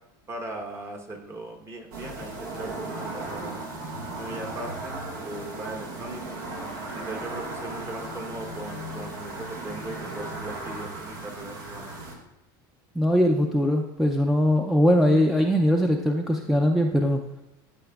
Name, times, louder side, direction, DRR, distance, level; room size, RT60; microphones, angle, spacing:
voice 1, 0.3-3.6 4.1-6.4 6.9-12.1, right 2 dB, 25° right, 3 dB, 1.1 m, -39 dB
sound 1, 1.9-12.1, right 2 dB, 80° right, 1.6 m, -36 dB
voice 2, 13.0-17.2, equal, ahead, 2 dB, 0.4 m, -21 dB
12.5 x 5.9 x 2.4 m, 0.93 s
supercardioid pair, 125°, 11 cm